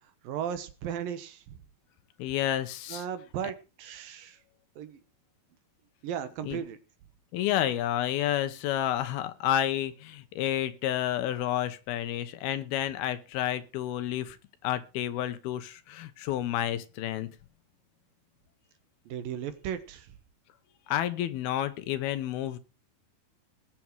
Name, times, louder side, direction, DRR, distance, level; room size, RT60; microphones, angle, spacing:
voice 1, 0.2-1.6 2.9-4.4 4.8-5.0 6.0-6.8 19.1-20.1, right 9 dB, 70° right, 2.8 m, -36 dB
voice 2, 2.2-3.1 6.4-6.6 7.3-14.4 14.6-17.3 20.9-22.6, left 12 dB, 80° left, 2.9 m, -30 dB
20.0 x 7.8 x 4.7 m
omnidirectional pair, 4.4 m